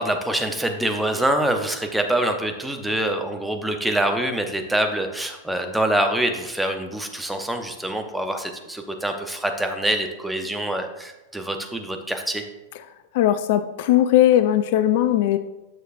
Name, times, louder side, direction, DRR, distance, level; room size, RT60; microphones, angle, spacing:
voice 1, 0.0-12.4, right 1 dB, 5° right, 4 dB, 0.7 m, -25 dB
voice 2, 13.1-15.4, left 12 dB, 50° left, 12 dB, 0.3 m, -18 dB
9.1 x 6.4 x 2.5 m, 1.1 s
figure-of-eight pair, 95°, 0 cm